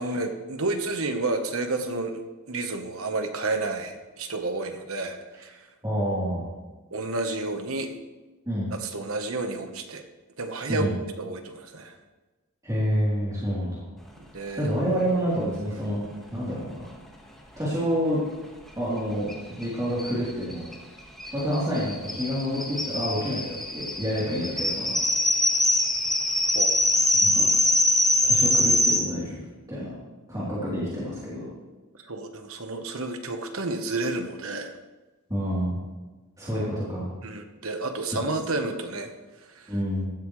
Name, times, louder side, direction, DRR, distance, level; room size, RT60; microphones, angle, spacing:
voice 1, 0.0-5.6 6.9-7.9 8.7-10.1 10.4-10.9 11.2-12.0 14.3-14.7 24.7-24.9 26.5-26.8 32.0-34.7 36.5-36.6 37.2-39.1 39.5-39.7, right 2 dB, 70° right, 6 dB, 1.2 m, -31 dB
voice 2, 5.8-6.5 8.5-8.7 10.7-10.9 12.6-13.8 14.4-16.0 16.3-16.8 17.6-18.2 18.8-20.7 21.3-25.0 27.2-27.5 28.2-29.4 29.7-29.9 30.3-31.4 35.3-35.8 36.4-37.1 38.1-38.2 39.7-40.1, equal, 15° right, -9 dB, 3.5 m, -28 dB
sound 1, 19.3-19.4 19.6-19.7 20.0-29.0, left 1 dB, ahead, 1.6 m, -23 dB
16.0 x 13.5 x 3.3 m, 1.2 s
head